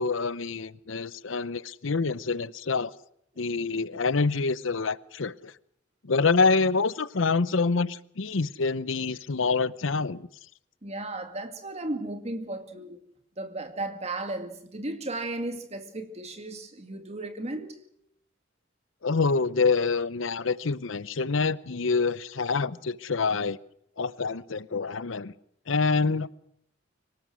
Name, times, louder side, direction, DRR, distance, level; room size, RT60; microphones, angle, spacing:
voice 1, 0.0-2.9 3.4-5.5 6.0-10.3 19.0-23.6 24.0-25.3 25.7-26.3, left 4 dB, 75° left, 0.8 m, -26 dB
voice 2, 10.8-13.0 13.4-17.8 24.0-24.1, right 2 dB, 35° right, 2.3 m, -35 dB
24.5 x 18.5 x 6.3 m
head